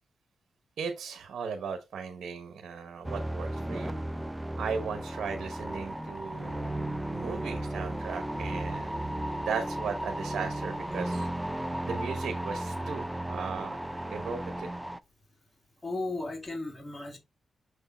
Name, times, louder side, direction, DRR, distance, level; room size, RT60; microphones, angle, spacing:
voice 1, 0.8-4.0 4.5-6.7 7.1-11.3 11.8-13.8 14.1-14.7, right 6 dB, 75° right, 0.9 m, -37 dB
sound 1, 3.0-15.0, right 1 dB, 10° right, 0.5 m, -35 dB
voice 2, 15.8-17.2, left 2 dB, 25° left, 2.6 m, -35 dB
6.5 x 3.5 x 4.2 m
cardioid pair, 60°, 0 cm